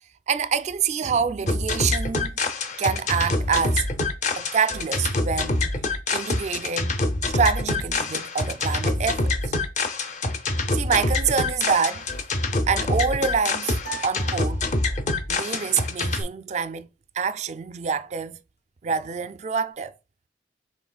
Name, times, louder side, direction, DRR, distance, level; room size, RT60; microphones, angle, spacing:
voice 1, 0.3-2.4 2.8-3.9 4.3-5.7 6.1-7.0 7.3-9.5 10.7-12.1 12.7-14.7 15.3-16.9 17.1-18.4 18.8-19.9, right 6 dB, 40° right, 0.3 m, -26 dB
sound 1, 1.5-16.2, left 2 dB, 40° left, 0.7 m, -26 dB
sound 2, 13.8-15.3, right 5 dB, 60° left, 2.3 m, -40 dB
6.0 x 3.8 x 2.3 m
head